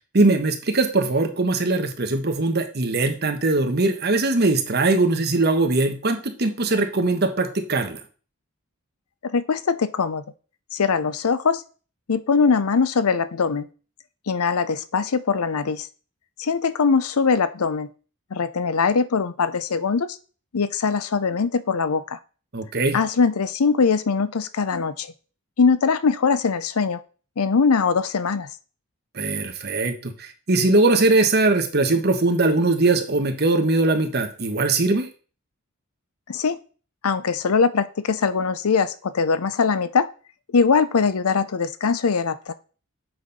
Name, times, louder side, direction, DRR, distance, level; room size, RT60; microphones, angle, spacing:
voice 1, 0.1-8.0 22.5-23.0 29.1-35.1, right 2 dB, 45° right, 6 dB, 1.1 m, -21 dB
voice 2, 9.2-10.2 10.7-11.6 12.1-13.7 14.3-15.9 16.4-17.9 18.3-20.2 20.5-22.2 22.9-25.1 25.6-27.0 27.4-28.5 36.3-36.6 37.0-40.1 40.5-42.5, left 5 dB, 80° left, 14 dB, 0.6 m, -21 dB
7.7 x 4.3 x 5.3 m, 0.37 s
head